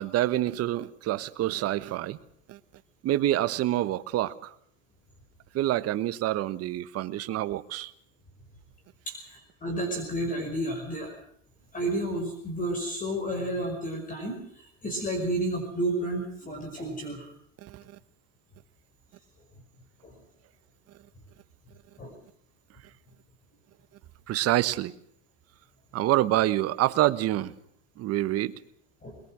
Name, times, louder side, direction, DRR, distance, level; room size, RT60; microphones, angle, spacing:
voice 1, 0.0-2.2 2.5-2.6 3.0-4.5 5.5-7.9 17.6-18.0 24.3-24.9 25.9-27.5 28.0-28.5, right 14 dB, 40° right, 14 dB, 1.3 m, -27 dB
voice 2, 9.1-11.1 11.7-17.3 20.0-20.1 22.0-22.2 29.0-29.2, right 1 dB, 20° left, 4 dB, 5.5 m, -31 dB
22.0 x 22.0 x 6.3 m, 0.66 s
supercardioid pair, 125°, 37 cm